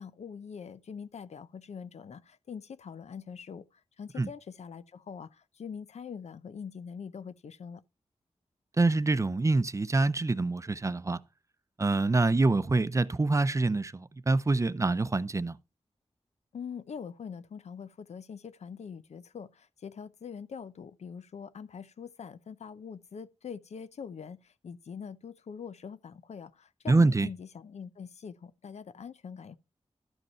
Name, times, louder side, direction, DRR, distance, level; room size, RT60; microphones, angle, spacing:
voice 1, 0.0-7.8 16.5-29.6, left 6 dB, 85° left, 0.6 m, -43 dB
voice 2, 8.8-11.2 11.8-15.6 26.9-27.3, right 3 dB, 30° right, 0.6 m, -25 dB
12.5 x 5.3 x 4.3 m
wide cardioid pair, 110°, 11 cm